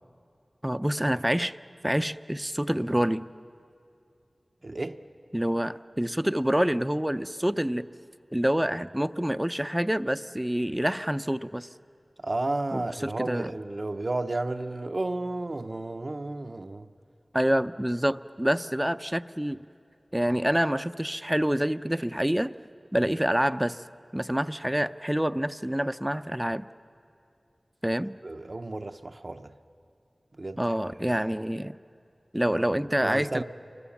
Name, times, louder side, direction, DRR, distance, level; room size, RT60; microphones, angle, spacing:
voice 1, 0.6-1.6 1.8-3.3 5.3-7.9 8.3-11.7 12.7-13.5 17.3-19.6 20.1-22.5 22.9-23.8 24.1-26.7 27.8-28.2 30.6-31.8 32.3-33.4, equal, 10° right, 0.5 m, -27 dB
voice 2, 4.6-5.0 12.2-16.9 28.2-29.5 30.4-30.7 31.0-31.2 33.0-33.4, right 2 dB, 55° right, 0.7 m, -32 dB
28.0 x 23.5 x 7.2 m
wide cardioid pair, 50°, 0 cm